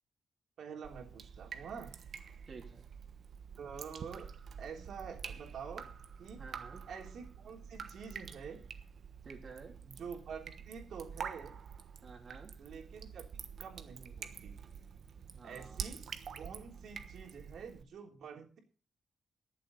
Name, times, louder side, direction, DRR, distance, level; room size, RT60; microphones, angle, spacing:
voice 1, 0.6-1.9 3.6-4.3 4.6-5.9 6.2-6.4 6.9-8.6 9.8-11.5 12.6-13.2 13.6-14.5 15.4-16.0 16.4-18.6, right 6 dB, 80° right, 1 dB, 3.5 m, -47 dB
Drip, 0.8-17.8, right 7 dB, 65° right, 1.3 m, -47 dB
voice 2, 2.5-2.9 6.3-6.8 9.2-9.7 12.0-12.5 15.3-15.8, right 4 dB, 45° right, 1 dB, 3.1 m, -51 dB
21.5 x 7.6 x 4.1 m, 0.39 s
wide cardioid pair, 135°, 0 cm